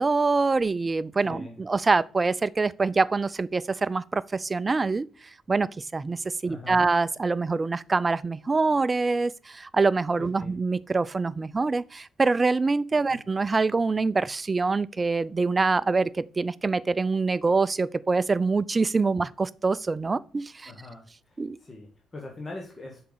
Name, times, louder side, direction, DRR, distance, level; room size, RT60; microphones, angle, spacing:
voice 1, 0.0-5.1 5.5-20.7 21.4-21.6, right 3 dB, 25° right, 0.3 m, -25 dB
voice 2, 1.2-1.6 6.4-6.8 10.4-10.5 13.1-13.2 20.7-23.0, left 2 dB, 25° left, 1.3 m, -42 dB
6.7 x 4.7 x 4.0 m
cardioid pair, 90°, 0 cm